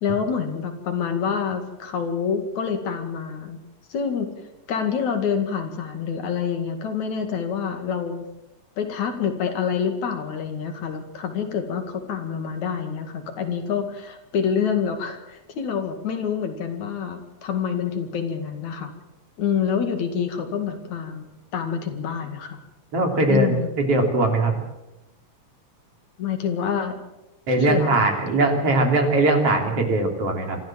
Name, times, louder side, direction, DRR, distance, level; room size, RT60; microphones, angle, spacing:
voice 1, 0.0-3.6 3.9-4.3 4.7-8.2 8.8-18.9 19.4-22.6 23.3-23.7 26.2-26.9 27.6-28.1, left 7 dB, 70° left, 6 dB, 3.5 m, -27 dB
voice 2, 22.9-24.6 27.5-30.6, right 2 dB, 50° right, 3 dB, 4.0 m, -20 dB
25.5 x 14.0 x 7.5 m, 0.96 s
omnidirectional pair, 3.4 m